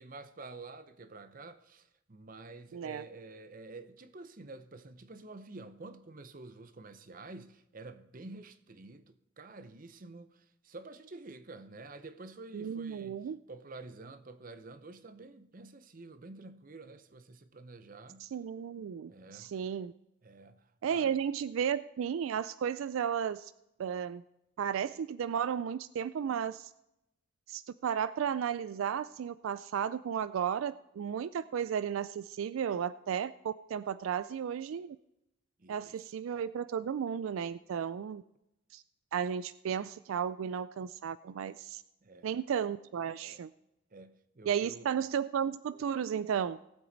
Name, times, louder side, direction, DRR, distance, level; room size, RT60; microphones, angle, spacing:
voice 1, 0.0-13.2 13.5-18.3 19.1-19.5 20.2-21.2 35.6-36.1 42.0-42.3 43.2-43.4 43.9-44.9, right 3 dB, 40° right, 0.7 m, -49 dB
voice 2, 2.7-3.0 12.5-13.4 18.2-19.9 20.8-23.5 23.8-24.2 24.6-26.7 27.5-35.0 35.7-38.2 38.7-38.8 39.1-41.8 42.2-43.5 44.5-46.6, right 8 dB, 85° right, 0.3 m, -34 dB
18.0 x 7.8 x 4.0 m
head